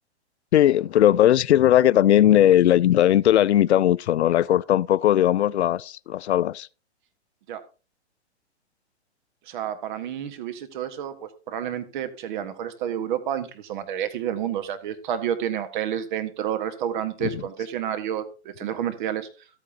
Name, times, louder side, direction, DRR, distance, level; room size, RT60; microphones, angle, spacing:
voice 1, 0.5-6.7 17.2-17.4, left 12 dB, 70° left, 0.5 m, -18 dB
voice 2, 9.5-19.3, right 10 dB, 45° right, 1.6 m, -30 dB
13.5 x 8.9 x 2.8 m
hypercardioid pair, 135°, 34 cm